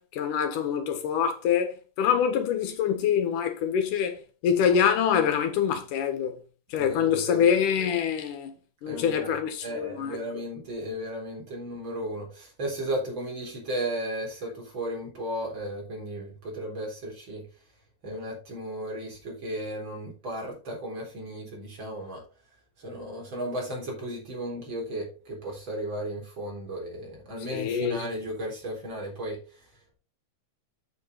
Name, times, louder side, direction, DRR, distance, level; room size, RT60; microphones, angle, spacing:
voice 1, 0.0-1.7 2.0-4.2 4.4-6.4 6.7-8.5 8.8-10.2 27.5-28.0, left 8 dB, 90° left, 3.0 m, -25 dB
voice 2, 6.7-7.4 8.9-17.5 18.0-22.2 22.8-29.9, right 1 dB, 40° right, 4.5 m, -35 dB
8.2 x 6.9 x 4.1 m
omnidirectional pair, 3.5 m